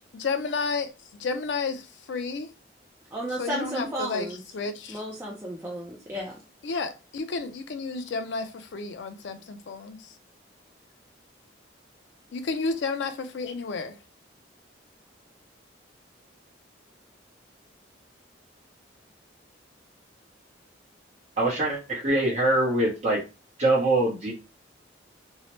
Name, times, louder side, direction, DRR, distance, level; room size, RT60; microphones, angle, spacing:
voice 1, 0.1-0.9 1.2-2.5 3.4-4.3 4.5-5.0 6.6-10.1 12.3-13.9, left 4 dB, 65° left, 0.4 m, -31 dB
voice 2, 3.1-4.4 4.9-6.4, right 1 dB, 10° right, 0.4 m, -33 dB
voice 3, 21.4-23.2 23.6-24.3, right 2 dB, 35° right, 0.8 m, -23 dB
2.7 x 2.0 x 3.0 m
head